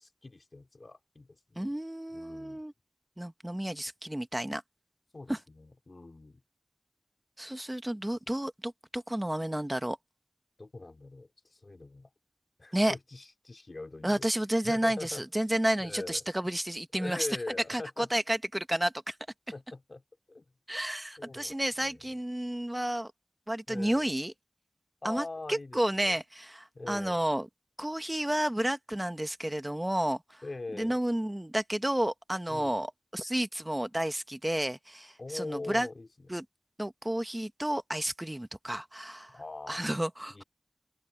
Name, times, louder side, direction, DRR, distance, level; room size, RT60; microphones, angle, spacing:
voice 1, 0.0-1.7 2.1-2.6 5.1-6.4 10.6-12.1 12.6-14.3 14.6-15.3 15.8-16.2 16.9-18.1 19.5-20.0 20.3-20.5 21.2-22.0 23.7-24.1 25.0-26.2 26.7-27.2 30.4-31.0 32.5-32.8 35.2-36.3 39.3-39.8 40.3-40.4, left 2 dB, 55° left, 3.1 m, -42 dB
voice 2, 1.6-2.7 3.2-4.6 5.3-5.4 7.4-10.0 12.7-12.9 14.0-17.3 17.7-19.2 20.7-23.1 23.5-24.3 25.0-27.5 27.8-30.4 30.8-35.9 36.3-36.4 36.8-39.4 39.7-40.4, right 1 dB, 15° right, 1.1 m, -31 dB
open air
wide cardioid pair, 55°, 0 cm